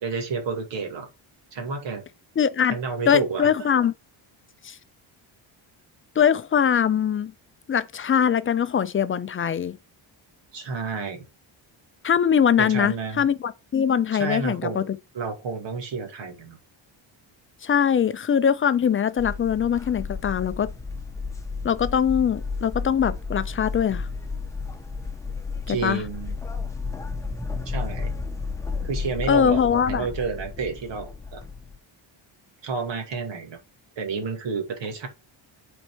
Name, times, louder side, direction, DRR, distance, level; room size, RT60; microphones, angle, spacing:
voice 1, 0.0-1.1 1.5-2.0 2.7-3.7 10.5-11.2 12.6-13.3 14.1-14.9 15.1-16.6 25.7-26.4 27.7-28.1 28.8-31.4 32.6-33.6 34.0-35.1, right 4 dB, 65° right, 2.2 m, -30 dB
voice 2, 2.4-2.7 3.1-3.9 4.6-4.7 6.2-7.3 7.7-9.8 12.0-15.0 17.6-20.7 21.6-24.1 25.7-26.0 29.3-30.1, left 8 dB, 30° left, 0.4 m, -22 dB
sound 1, 19.2-31.8, left 4 dB, 5° left, 1.0 m, -33 dB
8.8 x 4.6 x 4.6 m
wide cardioid pair, 160°, 47 cm